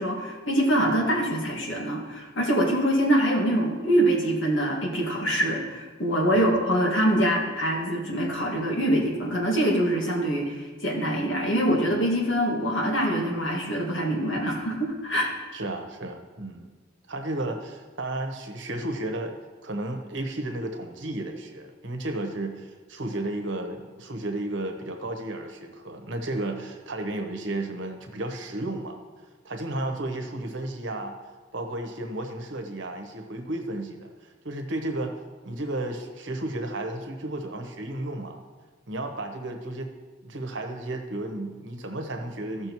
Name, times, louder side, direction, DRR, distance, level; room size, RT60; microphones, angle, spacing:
voice 1, 0.0-15.4, right 1 dB, 75° left, -1 dB, 2.0 m, -24 dB
voice 2, 15.5-16.7 17.1-19.3 19.6-29.0 29.4-31.2 31.5-38.4 38.9-39.9 40.2-42.7, right 1 dB, 75° right, 4 dB, 1.1 m, -33 dB
15.0 x 6.3 x 3.1 m, 1.3 s
head